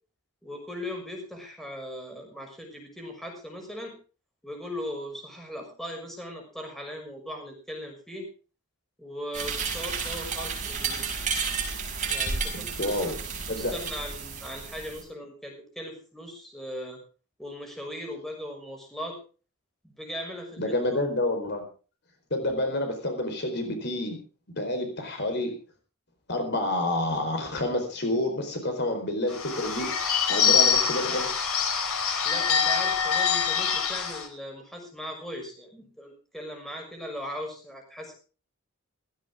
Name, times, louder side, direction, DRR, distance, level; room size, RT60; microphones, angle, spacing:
voice 1, 0.4-3.9 4.4-8.3 9.0-11.1 12.1-17.0 17.4-19.2 19.8-21.0 32.2-38.1, equal, ahead, 1 dB, 6.0 m, -39 dB
sound 1, 9.3-15.0, right 5 dB, 35° right, 6.0 m, -32 dB
voice 2, 12.5-13.1 13.5-13.7 20.6-21.6 22.3-24.2 24.6-25.5 26.3-29.9 30.3-31.4, left 1 dB, 50° left, 5 dB, 4.5 m, -28 dB
Bird / Bell, 29.3-34.3, left 7 dB, 80° left, 4.6 m, -25 dB
17.0 x 16.5 x 3.6 m, 0.37 s
head